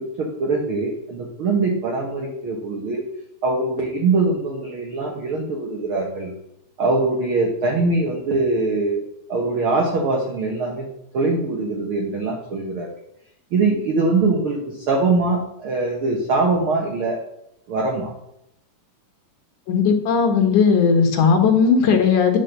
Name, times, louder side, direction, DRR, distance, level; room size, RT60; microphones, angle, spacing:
voice 1, 0.0-3.0 3.4-6.3 6.8-9.0 9.3-10.9 11.1-12.9 13.5-17.2 17.7-18.1, right 3 dB, 55° right, 0 dB, 1.6 m, -22 dB
voice 2, 19.7-22.4, left 6 dB, 65° left, 4 dB, 2.9 m, -17 dB
10.5 x 5.3 x 6.6 m, 0.80 s
omnidirectional pair, 4.0 m